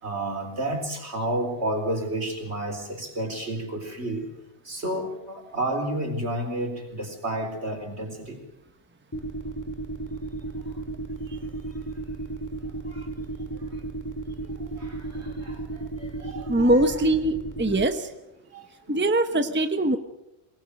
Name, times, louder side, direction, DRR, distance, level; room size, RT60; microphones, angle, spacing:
voice 1, 0.0-4.2 4.6-8.4 12.9-13.1 14.4-17.0 17.8-17.9 18.5-19.4, right 1 dB, 75° right, 3 dB, 4.3 m, -31 dB
sound 1, 9.1-17.8, right 2 dB, 15° left, 2.0 m, -33 dB
voice 2, 16.5-18.1 18.9-20.0, right 1 dB, 10° right, 8 dB, 1.0 m, -22 dB
23.5 x 19.5 x 6.5 m, 0.91 s
omnidirectional pair, 1.1 m